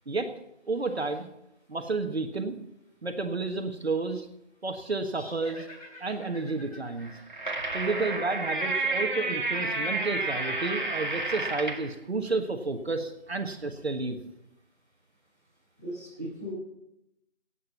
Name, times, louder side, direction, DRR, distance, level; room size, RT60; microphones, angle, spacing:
voice 1, 0.7-1.3 1.7-2.6 3.0-4.3 4.6-5.7 6.0-7.1 7.7-14.2, right 3 dB, 60° right, 6 dB, 1.4 m, -31 dB
sound 1, 5.1-8.5, left 1 dB, 30° left, 4.0 m, -50 dB
sound 2, 7.0-11.9, right 3 dB, 40° right, 1.6 m, -30 dB
voice 2, 15.8-16.5, equal, 15° left, -7 dB, 3.9 m, -37 dB
15.5 x 9.0 x 5.9 m, 0.83 s
figure-of-eight pair, 175°, 36 cm